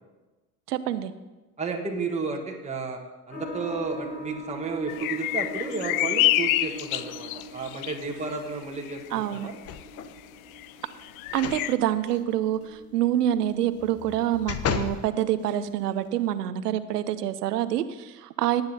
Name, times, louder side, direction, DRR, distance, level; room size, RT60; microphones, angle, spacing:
voice 1, 0.7-1.1 9.1-9.5 11.3-18.6, right 11 dB, 75° right, 13 dB, 0.8 m, -26 dB
voice 2, 1.6-3.0 3.3-9.5, right 4 dB, 15° right, 1 dB, 1.4 m, -32 dB
sound 1, 3.3-14.4, right 1 dB, 90° left, 1.8 m, -42 dB
sound 2, 4.9-8.0 8.9-9.1 9.5-9.6 10.6-10.7 11.0-11.7, left 15 dB, 60° left, 0.6 m, -27 dB
sound 3, 9.6-10.2 11.3-11.7 12.1-12.2 13.8-15.0 15.6-15.7, left 7 dB, 30° left, 0.8 m, -32 dB
18.0 x 9.6 x 2.8 m, 1.2 s
hypercardioid pair, 70°, 47 cm